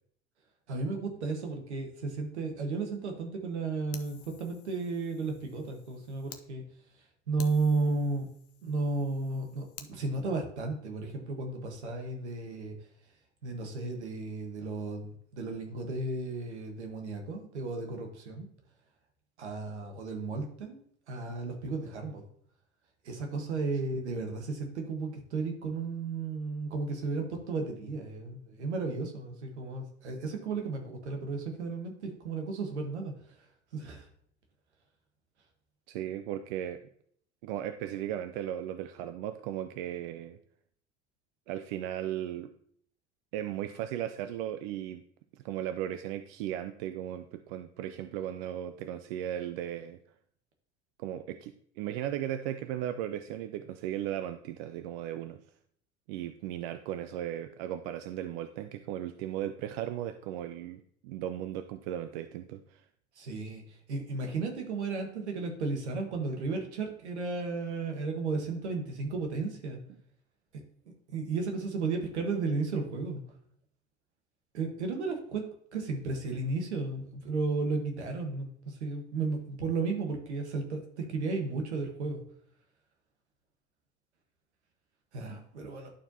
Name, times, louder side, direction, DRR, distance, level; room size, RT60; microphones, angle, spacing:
voice 1, 0.7-6.6 7.3-8.3 8.6-12.7 13.4-18.5 19.4-22.2 23.0-33.4 33.7-34.1 63.2-69.8 71.1-73.2 74.5-75.4 75.7-82.2 85.1-85.9, right 3 dB, 80° right, 3 dB, 1.3 m, -34 dB
Fire, 3.9-6.4 6.9-7.0 7.4-9.9, left 9 dB, 45° left, 0.7 m, -51 dB
voice 2, 35.9-36.8 37.4-40.4 41.5-42.5 43.3-45.0 45.4-50.0 51.0-55.4 56.1-62.8, right 11 dB, 60° right, 9 dB, 0.5 m, -36 dB
11.5 x 4.5 x 2.7 m, 0.64 s
hypercardioid pair, 70°, 34 cm